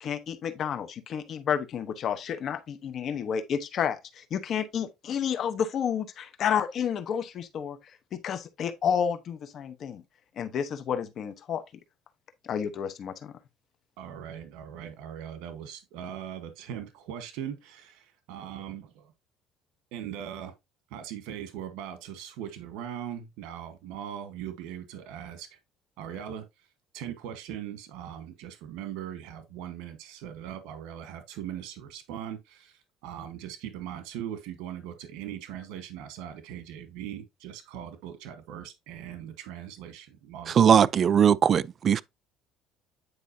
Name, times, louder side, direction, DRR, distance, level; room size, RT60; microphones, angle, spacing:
voice 1, 0.0-7.8 8.1-10.0 10.4-11.6 12.4-13.3, left 8 dB, 45° left, 1.0 m, -30 dB
voice 2, 14.0-19.1 19.9-20.5 20.9-25.6 26.0-26.7 26.9-40.8, right 10 dB, 85° right, 1.3 m, -40 dB
voice 3, 40.5-42.0, right 8 dB, 35° right, 0.4 m, -20 dB
9.7 x 4.9 x 2.7 m
cardioid pair, 140°, 0 cm